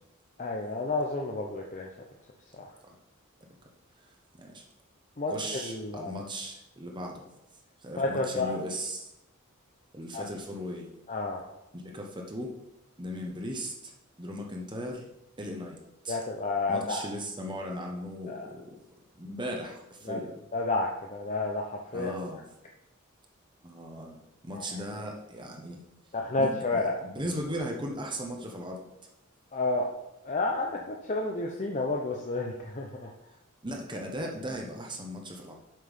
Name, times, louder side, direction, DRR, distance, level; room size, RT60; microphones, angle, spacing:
voice 1, 0.4-1.9 2.6-2.7 5.2-6.2 8.0-8.6 10.1-10.2 11.1-11.4 16.1-17.0 18.3-18.5 20.1-20.2 20.5-21.6 21.9-22.1 24.5-24.6 26.1-26.9 29.5-29.9 30.2-33.1, left 2 dB, 35° left, 0 dB, 0.8 m, -30 dB
voice 2, 5.3-7.2 7.8-9.1 9.9-10.9 11.7-12.5 13.0-13.9 14.2-15.1 15.4-15.8 16.0-16.2 16.7-18.8 19.2-20.4 21.9-22.4 23.6-24.2 24.4-25.8 26.4-28.8 33.6-35.5, equal, 20° right, 1 dB, 1.1 m, -37 dB
7.6 x 5.5 x 5.5 m, 0.92 s
head